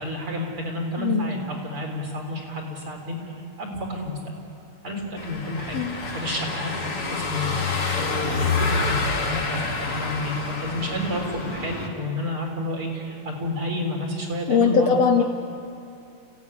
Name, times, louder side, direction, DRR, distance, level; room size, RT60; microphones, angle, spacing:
voice 1, 0.0-3.3 3.6-4.2 4.8-15.0, left 1 dB, 45° right, 0 dB, 4.8 m, -30 dB
Car passing by / Engine, 5.2-11.9, left 4 dB, 45° left, 3.3 m, -28 dB
voice 2, 14.5-15.2, left 6 dB, 70° left, 5 dB, 1.8 m, -20 dB
29.5 x 16.5 x 9.8 m, 2.6 s
omnidirectional pair, 3.5 m